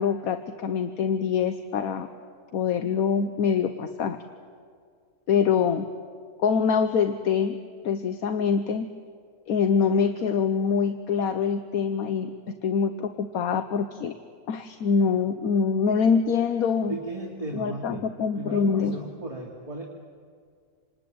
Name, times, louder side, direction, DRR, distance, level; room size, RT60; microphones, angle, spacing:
voice 1, 0.0-2.1 2.5-4.2 5.3-5.9 6.4-7.6 7.8-8.9 9.5-12.3 12.6-14.2 14.5-17.0 17.5-19.0, left 6 dB, 70° left, 9 dB, 1.3 m, -24 dB
voice 2, 16.9-18.1 18.3-19.8, right 1 dB, 20° right, -2 dB, 2.5 m, -35 dB
27.5 x 20.0 x 9.5 m, 2.1 s
omnidirectional pair, 1.6 m